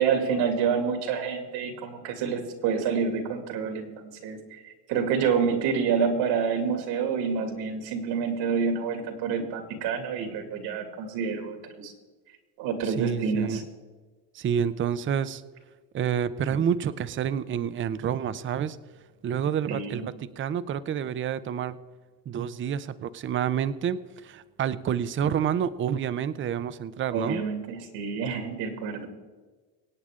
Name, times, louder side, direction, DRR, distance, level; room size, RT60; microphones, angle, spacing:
voice 1, 0.0-11.9 12.6-13.6 19.7-20.1 27.1-29.1, right 6 dB, 75° right, 5 dB, 2.6 m, -28 dB
voice 2, 12.8-13.6 14.3-15.4 15.9-18.8 19.2-21.8 22.3-27.4, right 8 dB, 30° right, 15 dB, 0.6 m, -28 dB
24.5 x 8.8 x 3.7 m, 1.4 s
cardioid pair, 120°, 44 cm